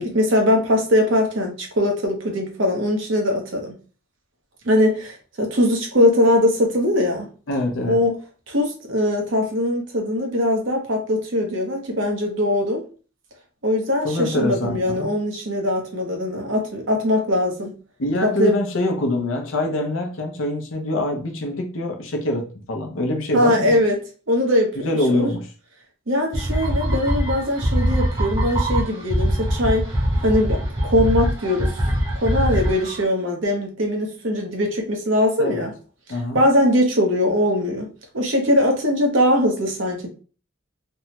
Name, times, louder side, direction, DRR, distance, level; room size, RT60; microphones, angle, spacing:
voice 1, 0.0-3.8 4.6-7.2 7.9-8.2 8.5-12.8 13.6-17.7 18.2-18.5 23.3-24.0 24.3-25.3 26.1-29.9 30.2-31.7 32.2-35.7 36.3-37.9 38.1-40.1, left 1 dB, 65° right, 0.8 m, -21 dB
voice 2, 7.5-8.0 14.0-15.1 18.0-23.8 24.8-25.5 35.4-35.6 36.1-36.4, left 1 dB, 70° left, 0.6 m, -24 dB
sound 1, 26.3-33.0, equal, 25° right, 0.9 m, -22 dB
3.4 x 2.1 x 2.8 m
head